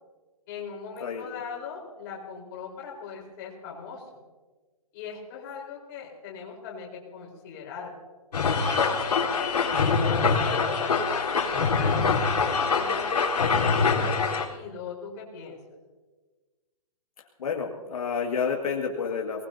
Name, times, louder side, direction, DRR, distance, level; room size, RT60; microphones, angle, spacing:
voice 1, 0.5-4.2 4.9-7.9 8.6-12.3 12.8-15.6, left 6 dB, 30° left, -2 dB, 4.2 m, -39 dB
sound 1, 8.3-14.4, left 4 dB, 90° left, 4.1 m, -24 dB
voice 2, 17.4-19.4, left 6 dB, 65° left, -1 dB, 2.1 m, -29 dB
24.0 x 19.5 x 2.8 m, 1.3 s
hypercardioid pair, 165°, 20 cm